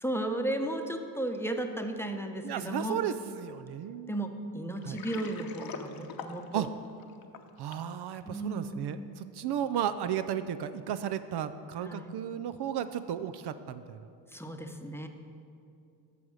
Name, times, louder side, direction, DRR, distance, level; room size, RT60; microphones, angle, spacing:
voice 1, 0.0-3.0 4.1-4.3 4.5-6.7 8.3-9.0 11.8-12.2 14.3-15.1, right 1 dB, 5° left, 5 dB, 0.9 m, -34 dB
voice 2, 2.4-4.2 4.8-5.0 6.5-6.7 7.6-14.0, right 9 dB, 60° right, 11 dB, 0.6 m, -34 dB
Water, 4.8-7.9, left 6 dB, 50° left, 1.0 m, -43 dB
14.0 x 5.0 x 6.3 m, 2.6 s
supercardioid pair, 75°, 46 cm